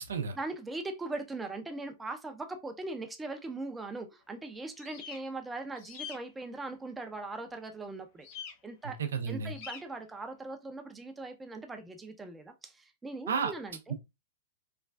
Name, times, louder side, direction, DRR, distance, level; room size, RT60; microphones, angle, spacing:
voice 1, 0.4-8.3 8.6-9.0 9.3-13.9, right 2 dB, 10° right, 0.5 m, -40 dB
sound 1, 4.8-5.2 5.8-6.2 8.2-8.5 9.5-9.8, left 8 dB, 50° left, 0.6 m, -43 dB
voice 2, 8.8-9.5 13.3-13.5, right 6 dB, 75° right, 0.4 m, -32 dB
3.2 x 2.3 x 2.3 m
hypercardioid pair, 105°, 0 cm